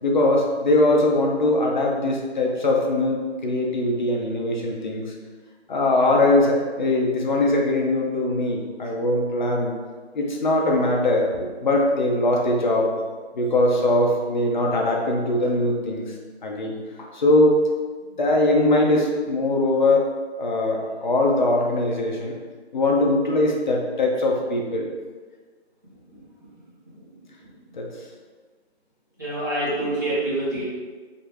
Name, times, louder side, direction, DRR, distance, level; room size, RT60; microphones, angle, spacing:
voice 1, 0.0-5.1 5.7-9.7 10.1-11.3 11.6-12.9 13.3-16.1 16.4-17.6 18.2-20.1 20.4-22.3 22.7-24.9 27.8-27.9, left 2 dB, 45° left, -1 dB, 0.5 m, -21 dB
voice 2, 29.2-30.6, right 1 dB, 20° right, -11 dB, 0.5 m, -26 dB
2.4 x 2.2 x 3.1 m, 1.4 s
figure-of-eight pair, 160°, 33 cm